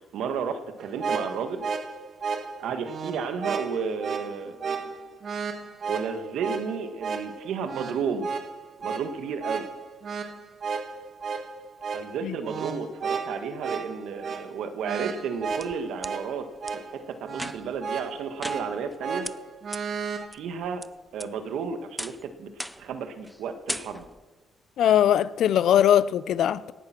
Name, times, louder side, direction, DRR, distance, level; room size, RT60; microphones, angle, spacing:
voice 1, 0.1-1.6 2.6-4.6 5.9-8.3 8.8-9.6 11.9-19.3 20.3-20.8 21.1-22.5 22.8-24.0, right 6 dB, 80° right, 1.6 m, -32 dB
sound 1, 0.8-20.3, right 5 dB, 55° right, 1.6 m, -34 dB
sound 2, 15.2-16.1 16.7-16.8 17.3-17.8 18.4-19.0 19.2-19.3 19.7-19.8 20.3-20.9 21.2-21.6 22.0-22.2 22.6-22.9 23.2-23.4 23.7-24.2, equal, ahead, 0.5 m, -37 dB
voice 2, 24.8-26.7, left 10 dB, 75° left, 0.6 m, -21 dB
18.5 x 11.0 x 6.0 m
cardioid pair, 90°, 0 cm